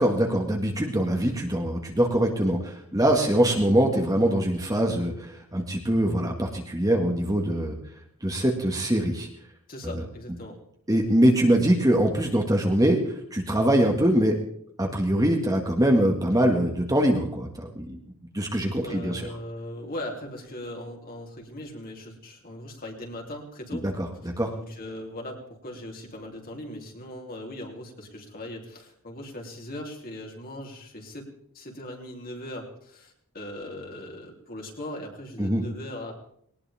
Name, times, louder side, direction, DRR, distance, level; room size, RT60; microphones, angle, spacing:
voice 1, 0.0-7.8 8.2-9.3 9.8-10.0 10.9-14.3 14.8-18.0 18.3-19.2 23.8-24.1 24.4-24.5 35.4-35.6, right 1 dB, 15° right, 1 dB, 1.9 m, -23 dB
voice 2, 9.7-10.6 18.8-23.8 24.5-31.3 31.5-36.1, left 1 dB, 40° left, 0 dB, 3.6 m, -39 dB
21.0 x 19.0 x 3.6 m, 0.65 s
head